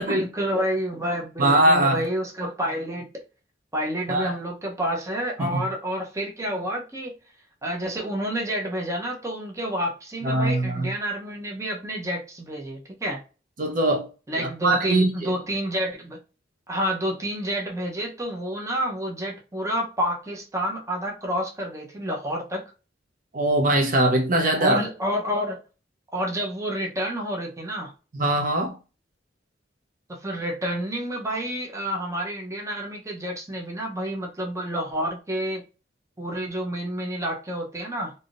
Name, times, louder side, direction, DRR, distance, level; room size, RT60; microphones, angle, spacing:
voice 1, 0.0-3.2 3.7-7.2 7.6-13.2 14.3-16.2 16.7-22.6 24.6-25.6 26.1-27.9 30.1-35.6 36.2-38.1, equal, 15° right, 0.8 m, -29 dB
voice 2, 1.4-2.0 4.1-4.3 5.4-5.7 10.2-10.9 13.6-14.1 14.4-15.3 23.3-24.8 28.1-28.7, right 1 dB, 50° right, 0.6 m, -21 dB
3.3 x 2.7 x 2.5 m
head